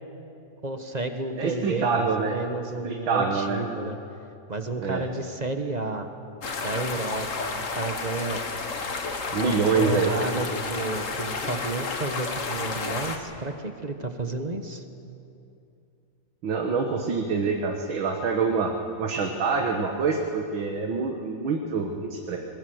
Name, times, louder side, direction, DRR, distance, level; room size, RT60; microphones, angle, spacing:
voice 1, 0.6-4.0 4.5-6.1 6.6-7.3 7.7-8.4 9.3-14.8, right 3 dB, 25° right, 6 dB, 1.0 m, -31 dB
voice 2, 1.4-2.4 2.8-3.6 4.8-5.0 9.3-10.2 16.4-18.7 19.0-22.4, right 4 dB, 85° right, 2 dB, 2.2 m, -26 dB
sound 1, 6.4-13.2, left 4 dB, 45° left, 1.7 m, -31 dB
22.0 x 20.0 x 7.9 m, 2.6 s
omnidirectional pair, 2.1 m